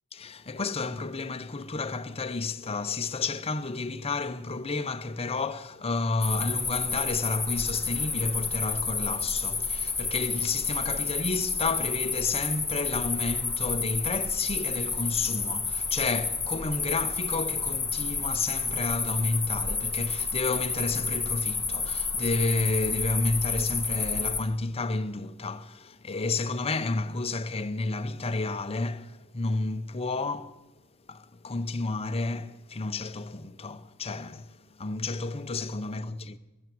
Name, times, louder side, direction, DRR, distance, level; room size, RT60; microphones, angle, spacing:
voice 1, 0.1-30.6 31.1-36.4, left 3 dB, 25° left, 0.6 m, -31 dB
sound 1, 6.2-24.4, left 4 dB, 10° left, 1.5 m, -30 dB
20.0 x 7.1 x 9.1 m
head